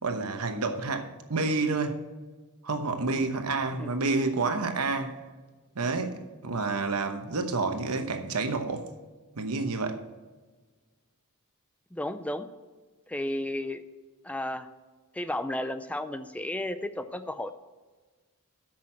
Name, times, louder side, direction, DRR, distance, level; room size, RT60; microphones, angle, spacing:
voice 1, 0.0-2.0 2.6-5.2 5.7-8.9 9.4-10.0, right 3 dB, 75° right, 1.0 m, -29 dB
voice 2, 11.9-12.5 13.1-13.8 14.2-14.7 15.1-17.5, left 1 dB, 5° left, 0.3 m, -33 dB
8.8 x 6.1 x 7.3 m
head